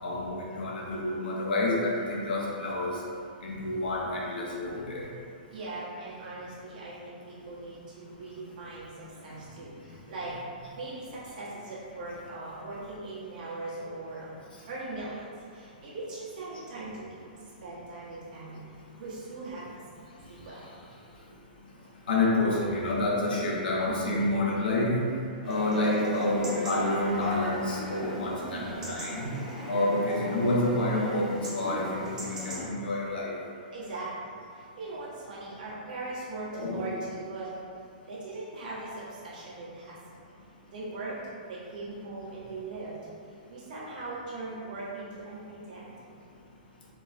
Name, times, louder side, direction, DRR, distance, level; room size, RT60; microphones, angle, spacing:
voice 1, 0.0-3.0 3.4-5.0 22.1-25.0 25.4-29.3 29.7-33.4 36.5-36.9, left 2 dB, 75° left, -3 dB, 1.0 m, -28 dB
voice 2, 5.5-10.4 10.8-14.4 14.7-17.2 17.6-18.6 19.0-19.8 20.3-20.7 33.7-37.6 38.1-40.2 40.7-43.0 43.3-45.9, right 2 dB, 60° right, -8 dB, 1.5 m, -40 dB
Chatter / Livestock farm animals working animals / Chirp tweet, 25.4-32.6, equal, 10° right, 0.9 m, -39 dB
4.5 x 2.3 x 4.2 m, 2.5 s
hypercardioid pair, 160°, 5 cm